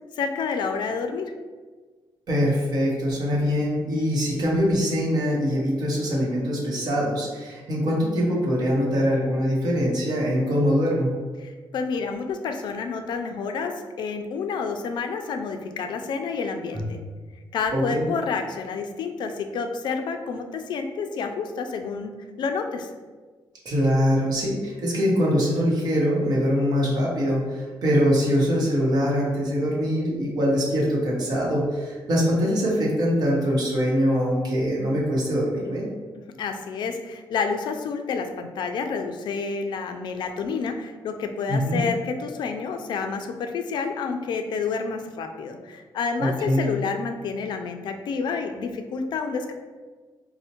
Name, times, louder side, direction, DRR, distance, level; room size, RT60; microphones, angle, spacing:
voice 1, 0.2-1.3 11.4-17.0 17.5-22.1 22.4-22.9 36.4-49.5, left 5 dB, 65° left, 6 dB, 0.3 m, -29 dB
voice 2, 2.3-11.2 16.7-16.8 17.7-18.1 23.6-35.9 41.5-41.8 46.2-46.8, equal, 55° right, -4 dB, 0.9 m, -23 dB
4.2 x 2.1 x 2.8 m, 1.4 s
wide cardioid pair, 160°, 8 cm